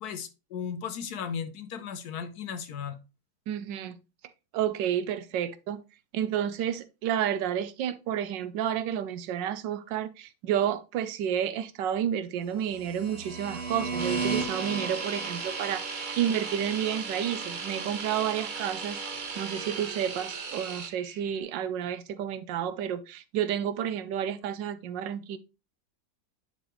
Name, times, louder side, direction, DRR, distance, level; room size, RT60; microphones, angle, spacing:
voice 1, 0.0-3.0, left 7 dB, 65° left, 1.2 m, -36 dB
voice 2, 3.5-4.0 4.5-5.8 6.1-25.4, right 9 dB, 85° right, 1.3 m, -31 dB
sound 1, 12.6-21.4, right 4 dB, 25° right, 1.1 m, -37 dB
sound 2, 14.0-20.9, right 5 dB, 55° right, 0.5 m, -37 dB
9.9 x 3.9 x 3.0 m
omnidirectional pair, 1.9 m